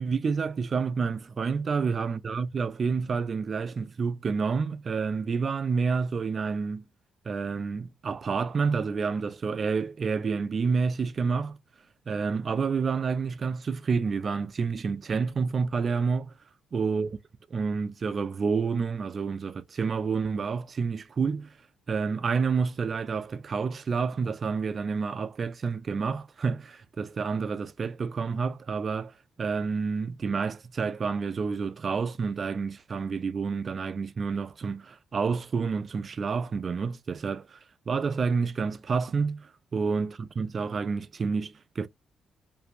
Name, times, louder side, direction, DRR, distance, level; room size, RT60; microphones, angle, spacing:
voice 1, 0.0-6.8 7.3-11.6 12.1-16.3 16.7-17.2 17.5-21.6 21.9-37.6 37.9-41.9, right 5 dB, 40° right, 0.3 m, -29 dB
2.7 x 2.6 x 2.4 m
cardioid pair, 90°, 0 cm